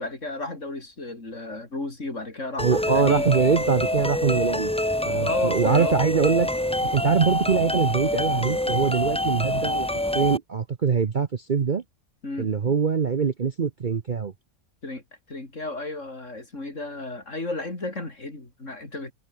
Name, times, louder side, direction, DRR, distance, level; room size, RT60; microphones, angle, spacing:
voice 1, 0.0-3.5 5.2-6.0 12.2-12.7 14.8-15.0 15.3-19.1, left 2 dB, 55° left, 5.1 m, -33 dB
sound 1, 2.6-10.4, left 1 dB, 5° left, 0.6 m, -26 dB
voice 2, 2.6-4.7 5.1-6.5 6.8-9.9 10.1-11.8 12.4-14.3, right 6 dB, 40° right, 0.8 m, -23 dB
omnidirectional pair, 1.5 m